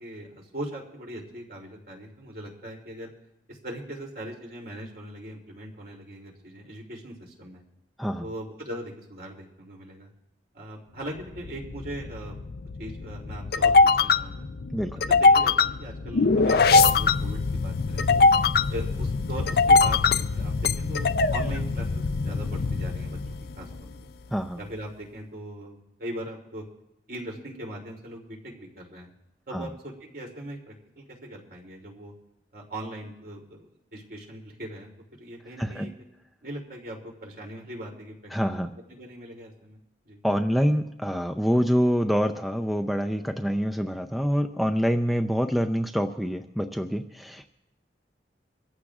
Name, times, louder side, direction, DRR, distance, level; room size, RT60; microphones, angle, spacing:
voice 1, 0.0-3.1 3.5-7.6 8.2-10.1 10.5-12.4 12.8-14.5 15.1-18.2 18.7-23.2 23.6-23.9 24.6-26.6 27.1-29.1 29.5-32.1 32.5-34.9 35.2-35.9 36.4-38.6 38.9-39.8 40.0-40.2, right 1 dB, 55° right, -1 dB, 3.0 m, -40 dB
sound 1, 11.2-23.9, left 4 dB, 60° left, 0.4 m, -22 dB
voice 2, 14.7-15.1 24.3-24.6 29.5-29.7 35.6-35.9 38.3-38.7 40.2-47.5, equal, ahead, 6 dB, 0.5 m, -26 dB
24.0 x 14.5 x 2.4 m, 0.88 s
head